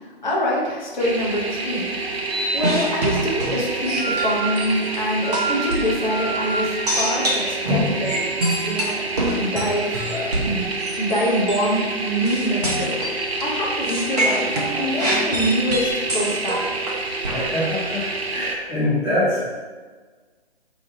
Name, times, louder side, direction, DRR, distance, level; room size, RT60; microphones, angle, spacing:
voice 1, 0.2-1.9 2.5-8.3 8.6-9.1 9.3-10.6 11.0-13.0 13.4-14.5 14.8-16.7, equal, 45° left, -4 dB, 0.9 m, -25 dB
sound 1, 1.0-18.6, right 3 dB, 70° right, 0.5 m, -28 dB
Wind instrument woodwind instrument, 1.9-8.2, right 4 dB, 70° left, 1.1 m, -32 dB
sound 2, 2.3-5.0 5.3-5.9 6.9-11.2 11.5-11.7 12.3-13.4 13.9-17.5, right 1 dB, 40° right, 0.8 m, -25 dB
voice 2, 17.3-19.5, left 1 dB, 10° left, -16 dB, 0.5 m, -24 dB
2.9 x 2.3 x 4.1 m, 1.4 s
figure-of-eight pair, 140°, 32 cm